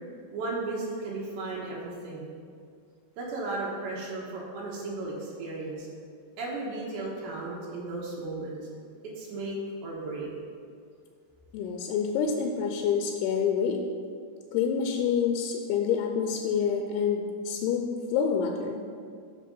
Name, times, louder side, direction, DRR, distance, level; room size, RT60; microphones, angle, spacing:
voice 1, 0.3-2.3 3.2-5.9 6.4-8.6 9.0-10.3, right 2 dB, 85° right, -4 dB, 3.5 m, -35 dB
voice 2, 11.5-13.8 14.5-17.8 18.1-18.8, left 7 dB, 80° left, 3 dB, 2.5 m, -27 dB
8.5 x 6.2 x 5.3 m, 2.2 s
omnidirectional pair, 4.9 m